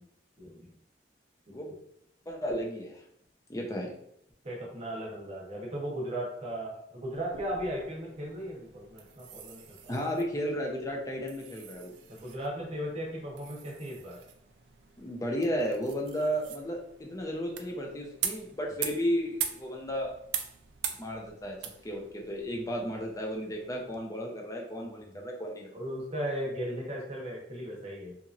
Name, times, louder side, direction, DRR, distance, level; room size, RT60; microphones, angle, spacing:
voice 1, 0.4-0.7 1.5-1.6 3.5-3.7 4.4-9.9 12.1-14.2 24.8-25.2 25.7-28.2, equal, 35° right, -3 dB, 0.9 m, -37 dB
voice 2, 2.3-3.0 3.5-3.9 9.9-11.9 15.0-20.1 20.9-21.6 21.8-25.7, equal, 20° left, 0 dB, 0.5 m, -33 dB
sound 1, 7.1-24.0, right 8 dB, 75° right, 0.3 m, -42 dB
2.8 x 2.6 x 2.5 m, 0.73 s
head